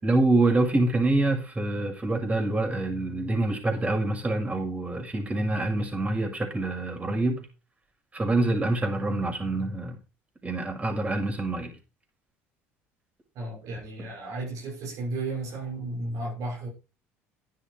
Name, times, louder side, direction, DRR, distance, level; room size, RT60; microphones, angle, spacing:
voice 1, 0.0-7.5 8.1-10.0 10.4-11.7, right 2 dB, 20° right, 6.8 m, -26 dB
voice 2, 13.3-16.7, right 2 dB, 65° right, 6.3 m, -34 dB
12.5 x 9.7 x 4.9 m
hypercardioid pair, 70°, 6 cm